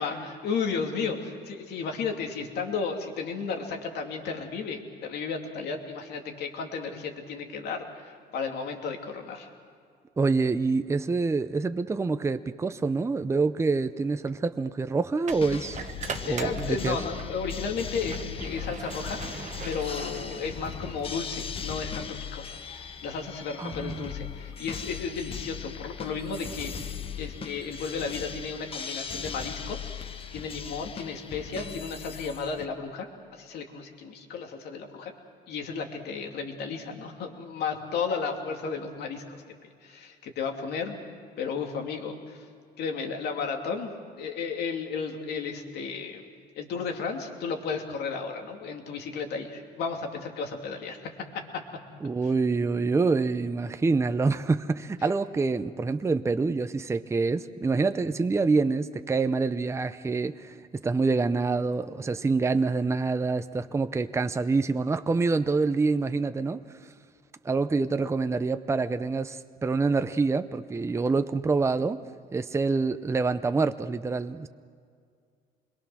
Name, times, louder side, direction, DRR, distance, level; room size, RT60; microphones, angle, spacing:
voice 1, 0.0-9.5 16.3-22.1 22.3-29.9 30.3-35.1 35.5-41.0 41.4-42.5 42.8-43.9 44.2-46.3 46.5-51.0 51.3-51.6 55.0-55.1, left 5 dB, 75° left, 3 dB, 2.7 m, -34 dB
voice 2, 10.2-15.8 16.2-17.0 23.6-24.1 52.0-66.6 67.4-72.0 72.3-74.5, right 4 dB, 15° right, 10 dB, 0.6 m, -26 dB
sound 1, 13.1-13.3 15.2-17.4 17.8-21.0, right 6 dB, 45° right, 1.4 m, -40 dB
sound 2, 15.3-32.7, left 7 dB, 35° left, 1.0 m, -38 dB
26.5 x 22.0 x 6.3 m, 2.2 s
cardioid pair, 110°, 17 cm